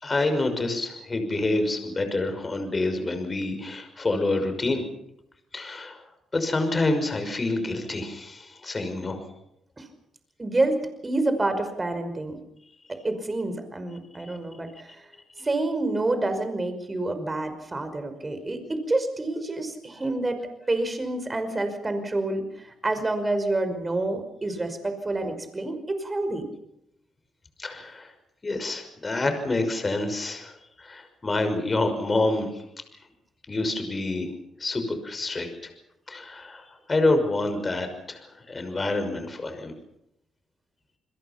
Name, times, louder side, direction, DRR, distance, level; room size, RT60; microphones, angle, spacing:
voice 1, 0.0-4.8 5.5-6.0 6.3-9.2 27.6-28.1 28.4-32.6 33.5-34.3 34.6-35.7 36.1-38.2 38.5-39.7, left 2 dB, 25° left, 7 dB, 5.9 m, -27 dB
voice 2, 10.4-12.4 12.9-15.0 15.4-20.4 20.7-26.4, right 2 dB, 20° right, 8 dB, 5.5 m, -28 dB
28.5 x 22.0 x 6.0 m, 0.80 s
cardioid pair, 90°, 0 cm